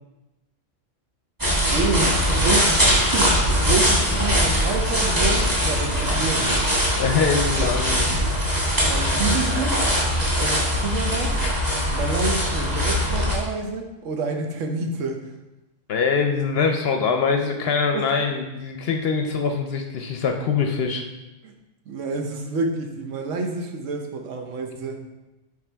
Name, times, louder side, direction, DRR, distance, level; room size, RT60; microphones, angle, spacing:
sound 1, 1.4-13.4, equal, 15° right, 1.3 m, -21 dB
voice 1, 1.7-6.5 8.9-9.9 10.4-11.4 11.9-15.2 17.9-18.1 21.4-21.5 21.9-25.0, right 3 dB, 75° right, 4 dB, 1.1 m, -28 dB
voice 2, 7.0-8.1 15.9-21.0, left 5 dB, 60° left, 4 dB, 0.7 m, -23 dB
8.6 x 3.4 x 3.3 m, 1.0 s
omnidirectional pair, 1.3 m